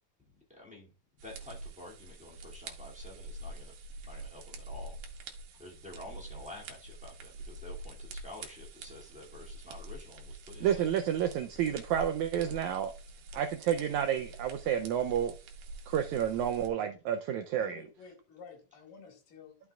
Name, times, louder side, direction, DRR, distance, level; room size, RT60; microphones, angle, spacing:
voice 1, 0.5-0.9 1.2-3.7 4.0-11.0, left 1 dB, 5° right, 1.4 m, -50 dB
sound 1, 1.2-16.7, right 2 dB, 70° right, 2.2 m, -46 dB
voice 2, 10.6-12.9 13.3-15.3 15.9-17.8, right 9 dB, 85° right, 1.6 m, -30 dB
voice 3, 17.6-19.7, left 4 dB, 75° left, 3.3 m, -51 dB
11.5 x 5.9 x 2.3 m
omnidirectional pair, 3.9 m